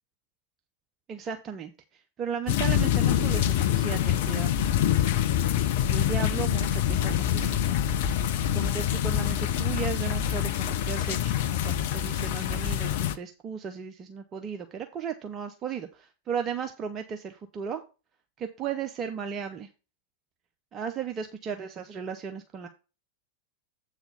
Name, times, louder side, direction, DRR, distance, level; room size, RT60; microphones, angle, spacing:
voice 1, 1.1-4.5 5.9-7.8 8.5-17.8 18.4-19.7 20.7-22.7, right 7 dB, 30° right, 6 dB, 0.7 m, -35 dB
sound 1, 2.5-13.2, left 10 dB, 50° left, 0.6 m, -25 dB
7.9 x 4.1 x 6.5 m, 0.32 s
figure-of-eight pair, 90°, 0 cm